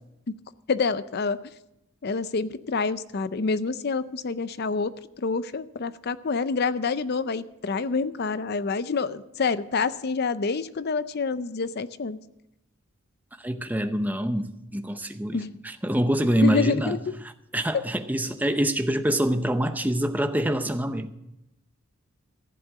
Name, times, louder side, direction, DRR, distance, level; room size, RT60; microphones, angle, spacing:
voice 1, 0.7-1.4 2.0-12.2 15.3-15.5 16.4-17.0, left 4 dB, 50° left, 0.5 m, -27 dB
voice 2, 13.4-17.0 17.5-21.1, right 1 dB, 10° right, 0.7 m, -25 dB
14.5 x 7.7 x 7.5 m
head